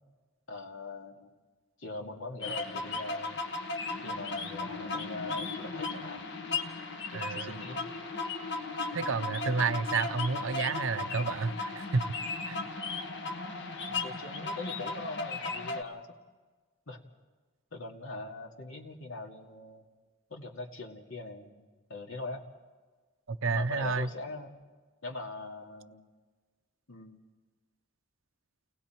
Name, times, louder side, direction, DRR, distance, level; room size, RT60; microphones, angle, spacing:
voice 1, 0.5-1.3 1.8-3.4 4.0-6.2 7.1-7.8 13.9-16.1 16.9-17.0 17.7-19.9 20.3-22.4 23.5-24.6 25.0-26.0 26.9-27.3, left 2 dB, 75° left, 2.4 m, -42 dB
sound 1, 2.4-15.8, left 3 dB, 55° left, 1.5 m, -36 dB
voice 2, 7.1-7.5 8.9-12.0 12.5-12.7 23.3-24.1, right 4 dB, 70° right, 0.6 m, -30 dB
29.5 x 19.5 x 4.5 m
head